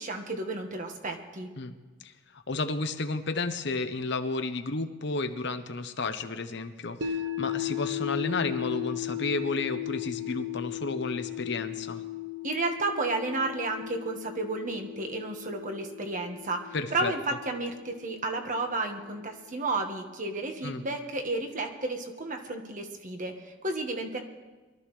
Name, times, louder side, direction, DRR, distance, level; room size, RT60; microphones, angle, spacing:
voice 1, 0.0-1.5 12.4-24.2, right 2 dB, 45° right, 4 dB, 1.5 m, -32 dB
voice 2, 2.0-12.0 16.7-17.1 20.6-20.8, left 3 dB, 65° left, 9 dB, 0.9 m, -32 dB
sound 1, 7.0-19.1, left 12 dB, 70° right, 1.1 m, -37 dB
23.0 x 13.0 x 3.3 m, 1.3 s
head